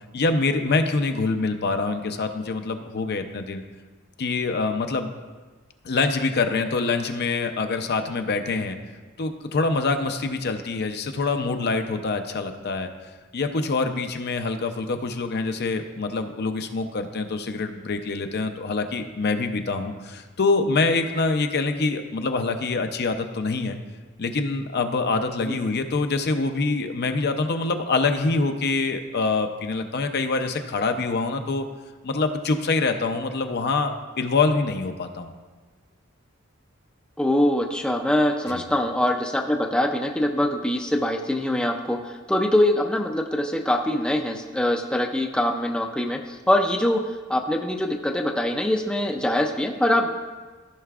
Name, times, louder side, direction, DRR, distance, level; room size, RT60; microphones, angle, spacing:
voice 1, 0.1-3.6 4.2-5.1 5.8-8.8 9.2-12.9 13.3-23.8 24.2-31.7 32.0-35.3 38.5-38.7, left 3 dB, 55° left, 7 dB, 0.6 m, -25 dB
voice 2, 37.2-47.0 47.3-50.1, left 1 dB, 5° left, 2 dB, 0.4 m, -23 dB
14.5 x 5.6 x 2.4 m, 1.3 s
head